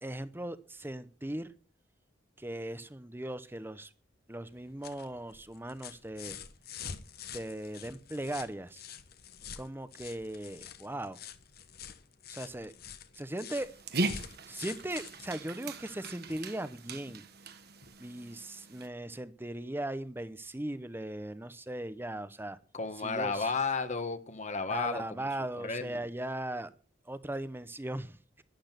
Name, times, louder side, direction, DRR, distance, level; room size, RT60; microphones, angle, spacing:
voice 1, 0.0-1.5 2.4-3.9 4.3-6.4 7.3-8.8 9.6-11.2 12.3-12.7 13.2-13.7 14.5-17.2 18.0-22.6 23.0-23.5 24.7-26.7 27.1-28.2, right 1 dB, 10° right, 0.9 m, -38 dB
sound 1, 4.5-16.5 17.8-17.9, left 7 dB, 55° left, 1.2 m, -47 dB
Dog, 13.5-18.9, right 2 dB, 60° right, 1.5 m, -39 dB
voice 2, 22.7-25.3 25.6-26.0, left 4 dB, 40° left, 1.6 m, -33 dB
12.0 x 11.5 x 6.0 m
head